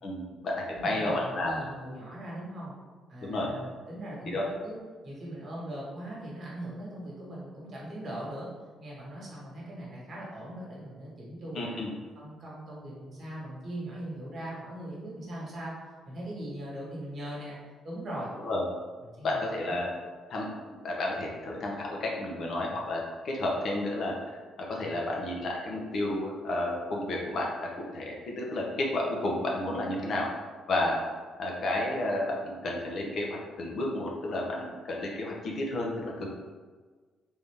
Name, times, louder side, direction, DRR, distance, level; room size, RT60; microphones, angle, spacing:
voice 1, 0.0-1.6 3.2-3.5 4.2-4.4 11.5-11.9 18.4-18.6 19.2-19.9 20.3-20.5 20.8-24.1 24.6-30.3 30.7-31.0 31.4-36.3, left 1 dB, 50° left, -2 dB, 0.7 m, -31 dB
voice 2, 0.7-2.8 3.1-8.5 8.8-11.8 12.1-15.8 16.0-17.6 17.8-18.3 19.0-19.8, right 1 dB, 45° right, -5 dB, 1.4 m, -40 dB
3.6 x 2.7 x 3.4 m, 1.4 s
cardioid pair, 130°, 0 cm